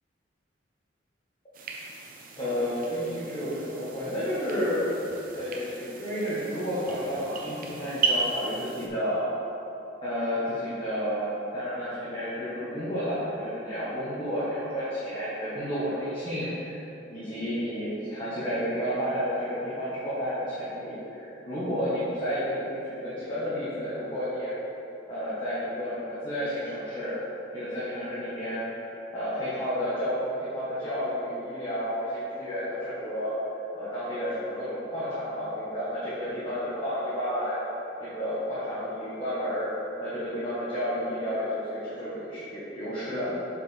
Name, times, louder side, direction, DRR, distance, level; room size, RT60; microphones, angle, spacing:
sound 1, 1.5-8.9, right 4 dB, 45° right, 0.7 m, -35 dB
voice 1, 2.4-4.8 5.3-9.2 10.0-16.8 17.1-24.5 25.1-27.2 27.5-28.6 29.1-33.3 33.7-37.6 38.0-39.7 40.0-43.4, equal, 25° left, -12 dB, 1.4 m, -31 dB
7.7 x 5.1 x 3.5 m, 3.0 s
head